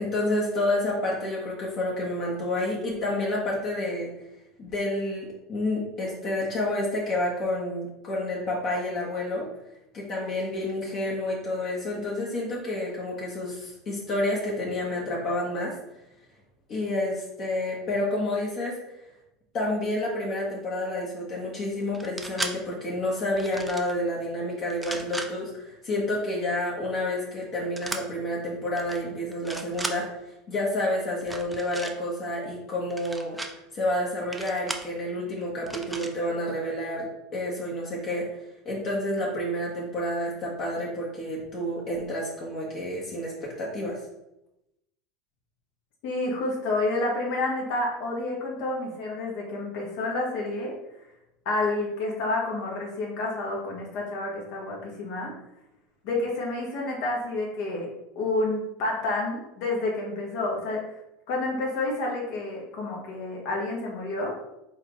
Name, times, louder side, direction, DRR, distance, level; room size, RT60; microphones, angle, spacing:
voice 1, 0.0-4.1 4.6-9.5 9.9-15.8 16.7-18.8 19.5-30.1 30.5-33.4 33.7-38.3 38.6-44.0, left 1 dB, 45° left, -4 dB, 1.4 m, -29 dB
sound 1, 21.9-22.5 23.4-23.9 24.7-25.3 27.8-28.0 28.7-29.0 29.3-30.0 31.2-31.9 32.9-33.5 34.3-34.9 35.7-36.1, right 2 dB, 10° right, 0.6 m, -35 dB
voice 2, 46.0-50.7 51.5-55.3 56.0-57.9 58.2-60.8 61.3-64.3, left 2 dB, 65° left, -2 dB, 1.7 m, -29 dB
4.5 x 3.7 x 3.2 m, 0.89 s
hypercardioid pair, 90°, 0 cm